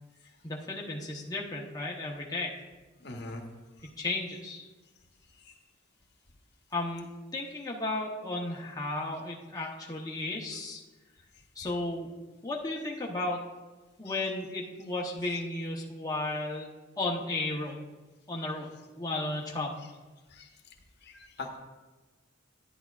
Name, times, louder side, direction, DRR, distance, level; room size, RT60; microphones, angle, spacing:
voice 1, 0.4-2.5 3.8-4.7 6.7-10.8 11.6-12.1 12.4-13.4 14.0-16.7 17.0-17.8 18.3-18.7 18.9-19.8, left 2 dB, 20° left, -2 dB, 0.8 m, -34 dB
voice 2, 3.0-3.4 5.4-5.5 14.0-14.1 20.3-20.5 21.0-21.6, left 2 dB, 60° left, 3 dB, 1.0 m, -42 dB
10.5 x 10.0 x 2.4 m, 1.2 s
head